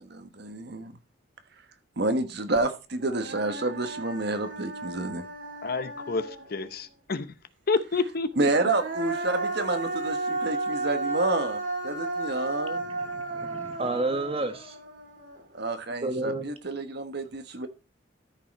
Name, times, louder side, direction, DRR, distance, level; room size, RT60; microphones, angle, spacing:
voice 1, 0.1-0.9 2.0-5.3 8.4-12.8 15.5-17.7, right 2 dB, 55° right, 1.2 m, -29 dB
Human voice, 2.6-2.7 3.0-6.7 8.3-15.6, right 2 dB, 70° right, 2.5 m, -34 dB
voice 2, 5.6-7.3 7.7-8.5, left 4 dB, 50° left, 0.7 m, -29 dB
voice 3, 12.9-14.8 16.0-16.5, right 2 dB, 30° right, 1.5 m, -31 dB
13.5 x 5.6 x 4.1 m
head